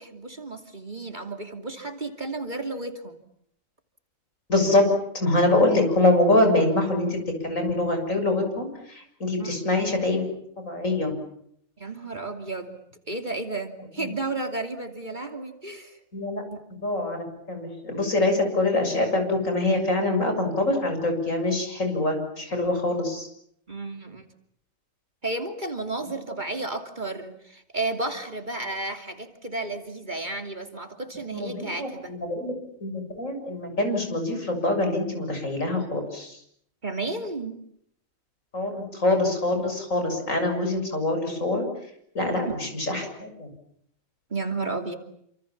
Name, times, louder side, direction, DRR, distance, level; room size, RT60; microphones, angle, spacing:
voice 1, 0.0-3.2 9.4-9.5 11.8-12.8 13.1-16.0 23.7-24.2 25.2-32.1 36.8-37.6 42.5-42.6 44.3-44.9, right 2 dB, 35° right, 5 dB, 2.9 m, -32 dB
voice 2, 4.5-4.9 5.1-7.2 7.4-10.3 10.6-11.1 14.0-14.1 16.1-16.4 16.8-23.3 31.3-32.5 32.8-36.4 38.5-41.6 42.2-43.5, left 2 dB, 70° left, 5 dB, 7.3 m, -24 dB
29.0 x 27.0 x 7.3 m, 0.71 s
omnidirectional pair, 1.4 m